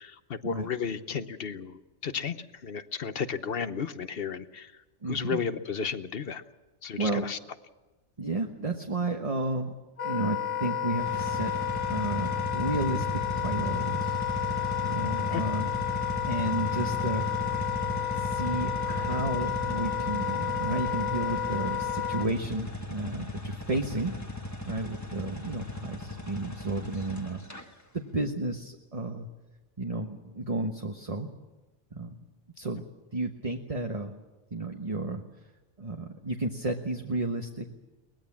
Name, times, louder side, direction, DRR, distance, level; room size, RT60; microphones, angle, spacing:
voice 1, 0.0-4.7 5.1-6.4 6.8-7.4 15.3-15.4, left 6 dB, 55° left, 12 dB, 1.1 m, -33 dB
voice 2, 5.0-5.4 7.0-7.2 8.2-9.7 10.0-11.5 11.9-14.2 14.8-15.7 16.3-17.3 18.1-24.1 24.6-27.4 27.9-29.3 29.8-31.3 31.9-32.1 32.6-32.8 33.1-34.1 34.5-35.2 35.8-37.7, right 2 dB, 30° right, 3 dB, 1.3 m, -32 dB
Wind instrument woodwind instrument, 10.0-22.3, left 9 dB, 80° left, 1.8 m, -31 dB
sound 1, 10.9-27.6, left 1 dB, 15° left, 1.5 m, -36 dB
23.0 x 19.5 x 7.3 m, 1.1 s
omnidirectional pair, 1.2 m